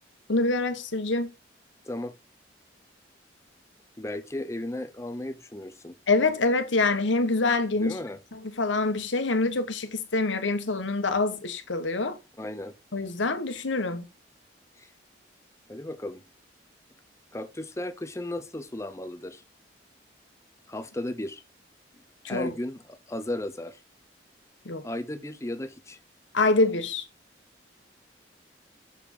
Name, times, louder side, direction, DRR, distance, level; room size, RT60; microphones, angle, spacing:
voice 1, 0.3-1.3 6.1-8.0 8.6-12.2 12.9-14.1 22.2-22.5 24.6-24.8 26.3-27.0, left 3 dB, 80° left, 1.2 m, -25 dB
voice 2, 4.0-6.0 7.8-8.2 12.4-12.7 14.8-14.9 15.7-16.2 17.3-19.4 20.7-21.4 21.9-23.8 24.8-26.0, left 1 dB, 15° left, 0.7 m, -35 dB
7.2 x 4.6 x 4.3 m
head